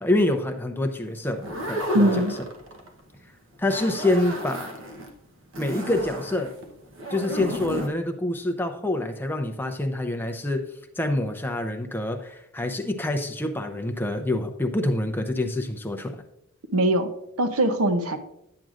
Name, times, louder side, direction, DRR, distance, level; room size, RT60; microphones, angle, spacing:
voice 1, 0.0-2.2 3.6-4.8 5.6-6.5 7.1-16.2, left 1 dB, 10° left, 5 dB, 0.5 m, -26 dB
sound 1, 1.3-3.0 3.5-5.1 5.5-7.9, equal, 55° right, 1.0 m, -32 dB
voice 2, 1.9-2.4 16.7-17.1 17.4-18.2, right 1 dB, 75° right, 9 dB, 0.8 m, -21 dB
10.5 x 7.6 x 2.5 m, 0.80 s
head